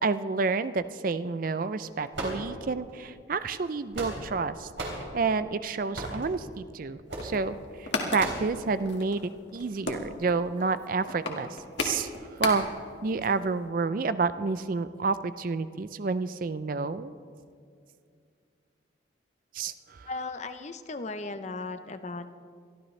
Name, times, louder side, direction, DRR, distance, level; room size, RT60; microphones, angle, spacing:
voice 1, 0.0-4.7 5.1-11.5 11.8-12.7 13.0-17.1 19.5-20.3, right 4 dB, 45° right, 13 dB, 0.4 m, -29 dB
sound 1, 2.1-2.9 3.6-4.4 4.8-5.1 5.9-6.3 7.1-7.3 8.2-8.5, right 1 dB, 70° right, 3.4 m, -35 dB
sound 2, 7.1-12.9 13.2-13.3 13.5-13.7, left 3 dB, 65° left, 1.8 m, -35 dB
voice 2, 20.1-22.3, left 3 dB, 35° left, 10 dB, 0.6 m, -36 dB
22.5 x 14.0 x 3.2 m, 2.2 s
head